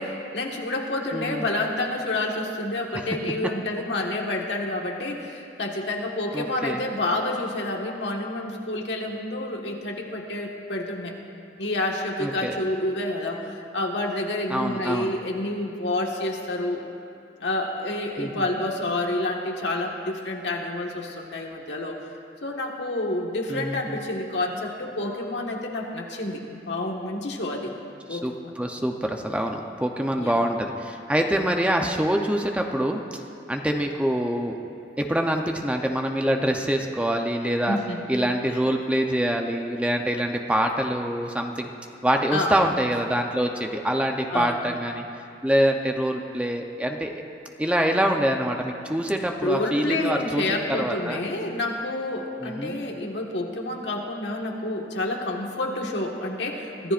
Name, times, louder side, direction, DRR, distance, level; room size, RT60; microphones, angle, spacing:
voice 1, 0.0-11.2 11.6-16.8 17.4-22.1 22.4-27.7 28.1-28.5 30.2-30.4 37.7-38.0 38.5-38.6 42.3-42.6 44.3-44.6 49.4-56.9, left 2 dB, 75° left, 0 dB, 1.6 m, -29 dB
voice 2, 1.1-1.4 6.3-6.8 12.2-12.6 14.5-15.1 18.2-18.4 23.5-24.0 28.1-33.2 33.5-34.6 35.0-37.8 38.1-41.7 42.0-45.0 45.4-47.2 47.6-51.3 52.4-52.8, equal, 5° right, 2 dB, 0.7 m, -25 dB
25.0 x 14.5 x 2.5 m, 2.6 s
head